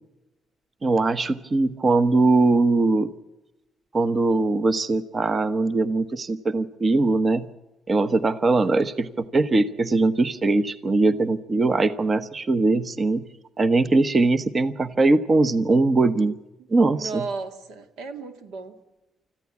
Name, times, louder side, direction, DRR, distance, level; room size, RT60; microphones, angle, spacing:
voice 1, 0.8-3.1 3.9-7.5 7.9-13.2 13.6-16.4 16.7-17.2, right 3 dB, 35° right, 13 dB, 1.0 m, -21 dB
voice 2, 8.4-8.8 16.9-18.7, right 4 dB, 90° right, 8 dB, 2.1 m, -35 dB
25.0 x 14.5 x 8.5 m, 1.0 s
cardioid pair, 90°, 0 cm